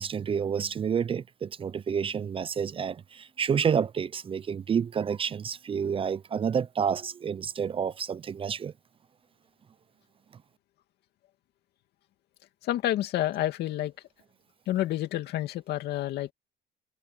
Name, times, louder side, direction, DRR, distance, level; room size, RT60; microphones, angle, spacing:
voice 1, 0.0-8.7, right 7 dB, 35° right, 0.5 m, -29 dB
voice 2, 12.6-13.9 14.7-16.3, left 13 dB, 75° left, 2.3 m, -29 dB
cardioid pair, 110°, 17 cm